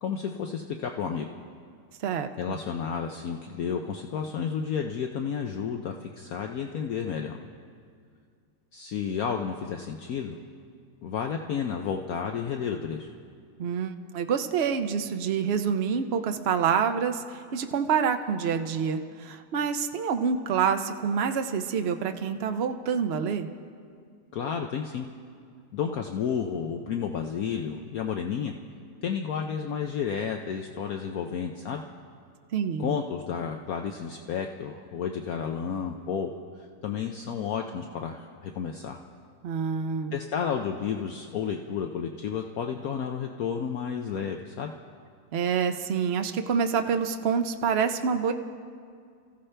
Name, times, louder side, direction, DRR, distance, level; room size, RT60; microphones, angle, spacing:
voice 1, 0.0-1.3 2.4-7.4 8.7-10.4 11.0-13.1 24.3-25.1 25.7-28.5 29.0-31.8 32.8-36.3 36.8-39.0 40.1-44.7, left 7 dB, 65° left, 3 dB, 1.0 m, -31 dB
voice 2, 2.0-2.6 13.6-23.5 32.5-32.9 39.4-40.1 45.3-48.3, right 6 dB, 75° right, 7 dB, 0.5 m, -27 dB
27.0 x 15.0 x 3.3 m, 2.2 s
omnidirectional pair, 1.9 m